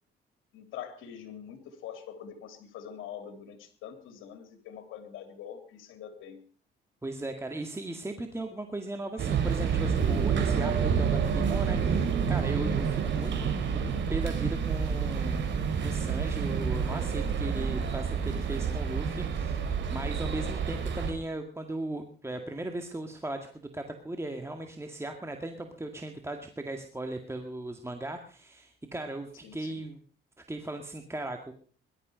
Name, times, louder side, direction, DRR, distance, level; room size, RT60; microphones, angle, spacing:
voice 1, 0.5-6.4 29.4-29.7, left 9 dB, 85° left, 7 dB, 3.2 m, -44 dB
voice 2, 7.0-15.4 15.8-19.6 19.9-30.0 30.5-31.5, right 2 dB, 15° right, 5 dB, 2.0 m, -37 dB
sound 1, 9.2-21.1, right 6 dB, 65° right, 4.0 m, -28 dB
20.5 x 12.5 x 5.1 m, 0.43 s
cardioid pair, 90°, 20 cm